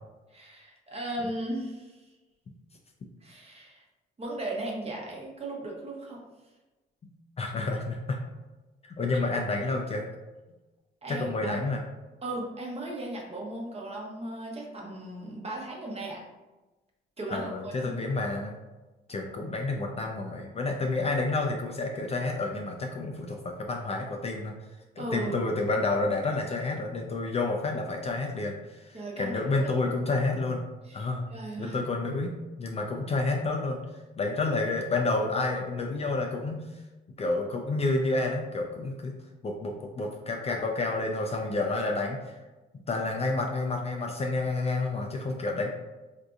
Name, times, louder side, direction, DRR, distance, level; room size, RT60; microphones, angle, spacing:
voice 1, 0.3-2.1 3.2-3.8 4.2-6.2 9.3-9.4 11.0-11.7 12.2-16.3 17.2-17.9 25.0-25.5 28.9-29.7 30.9-31.8, right 1 dB, 30° right, -2 dB, 0.9 m, -37 dB
voice 2, 7.4-8.2 8.8-10.0 11.1-11.8 17.3-18.6 19.1-24.5 25.0-30.6 30.9-31.3 31.6-33.8 34.2-36.8 37.1-39.1 39.4-42.4 42.9-45.7, left 3 dB, 30° left, 2 dB, 0.4 m, -29 dB
3.6 x 2.6 x 2.4 m, 1.1 s
cardioid pair, 90°, 20 cm